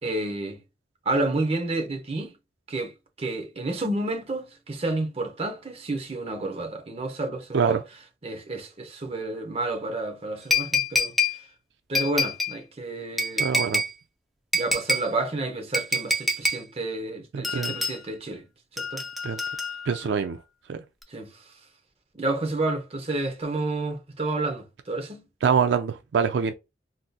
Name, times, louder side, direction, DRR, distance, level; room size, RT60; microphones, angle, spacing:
voice 1, 0.0-0.6 1.0-2.4 2.7-7.8 8.2-11.4 11.9-13.5 14.5-18.5 18.7-19.0 19.4-19.6 21.1-21.6 22.1-25.3, right 2 dB, 35° right, 0.7 m, -30 dB
sound 1, 10.5-11.4 11.9-12.6 13.2-13.9 14.5-15.1 15.7-16.6 17.4-18.0 18.8-20.0 21.0-21.1, left 2 dB, ahead, 0.4 m, -26 dB
voice 2, 13.4-13.8 17.3-17.7 19.2-19.4 19.9-20.4 20.7-20.8 25.4-26.5, right 6 dB, 75° right, 0.3 m, -24 dB
3.6 x 2.6 x 2.3 m
head